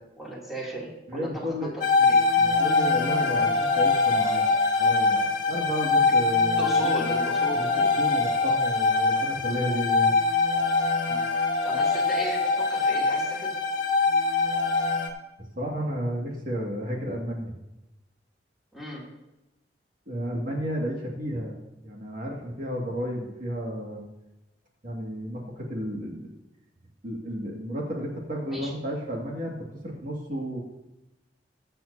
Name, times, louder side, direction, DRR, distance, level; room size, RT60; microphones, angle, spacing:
voice 1, 0.0-2.2 6.6-7.6 11.0-11.2 11.6-13.5 18.7-19.0 28.5-28.7, equal, ahead, -6 dB, 2.9 m, -36 dB
voice 2, 1.1-1.7 2.4-4.4 4.8-6.8 7.5-10.1 15.6-17.5 20.1-21.5 21.8-24.0 24.8-26.3 27.0-29.6 29.8-30.6, equal, 55° right, -2 dB, 2.1 m, -32 dB
sound 1, 1.8-15.1, left 4 dB, 55° left, 1.7 m, -23 dB
21.5 x 7.7 x 2.8 m, 0.96 s
head